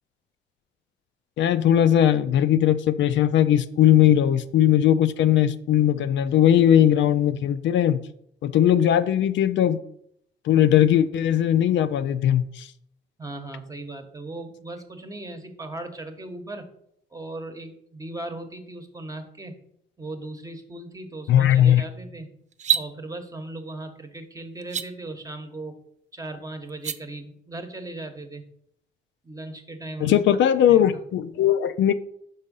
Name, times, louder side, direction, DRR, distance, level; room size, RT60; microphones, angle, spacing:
voice 1, 1.4-8.0 8.4-9.8 10.5-12.7 21.3-21.8 30.0-31.9, left 10 dB, 70° left, 0.4 m, -19 dB
voice 2, 13.2-16.7 17.1-19.5 20.0-22.3 22.7-25.7 26.1-28.4 29.2-30.2 30.7-31.0, right 2 dB, 15° right, 1.0 m, -37 dB
sound 1, 22.5-22.9 24.6-24.9 26.7-27.0, right 8 dB, 35° right, 0.4 m, -24 dB
5.4 x 3.6 x 5.3 m
cardioid pair, 90°, 20 cm